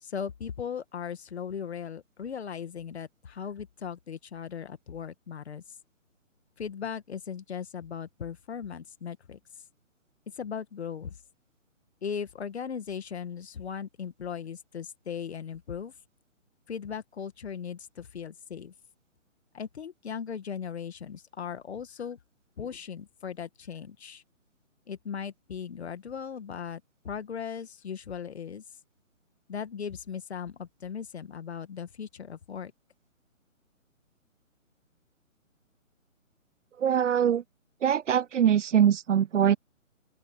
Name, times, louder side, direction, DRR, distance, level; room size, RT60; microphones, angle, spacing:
voice 1, 0.0-5.6 6.6-9.4 10.3-11.2 12.0-15.9 16.7-18.7 19.5-22.2 22.6-24.2 24.9-28.6 29.5-32.7, left 7 dB, 50° left, 2.0 m, -38 dB
voice 2, 36.8-37.4 37.8-39.6, right 9 dB, 65° right, 0.6 m, -23 dB
open air
hypercardioid pair, 165°, 40 cm